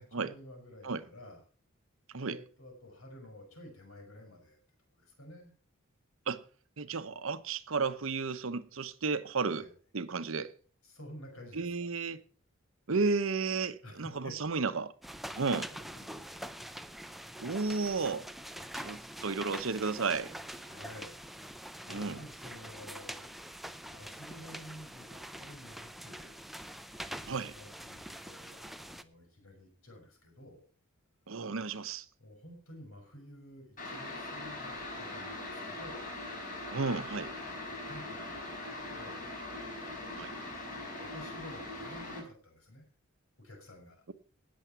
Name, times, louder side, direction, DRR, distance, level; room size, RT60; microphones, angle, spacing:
voice 1, 0.0-1.4 2.1-4.6 4.9-5.5 9.6-9.7 10.8-11.7 13.8-14.4 15.3-15.4 15.7-16.4 16.9-17.5 18.5-19.3 20.4-21.1 21.8-23.2 23.9-26.4 27.2-30.6 32.2-36.1 37.5-39.2 40.7-42.8 43.4-44.0, left 1 dB, 80° left, 6.6 m, -51 dB
voice 2, 6.8-9.6 9.9-10.5 11.5-12.2 12.9-14.9 15.4-15.7 17.4-18.2 18.7-20.3 21.9-22.2 27.3-27.5 31.3-32.0 36.7-37.3 40.2-40.3, right 4 dB, 70° right, 0.9 m, -33 dB
sound 1, 15.0-29.0, equal, ahead, 0.6 m, -45 dB
sound 2, 33.8-42.2, left 2 dB, 40° left, 4.9 m, -41 dB
18.5 x 7.2 x 5.9 m
head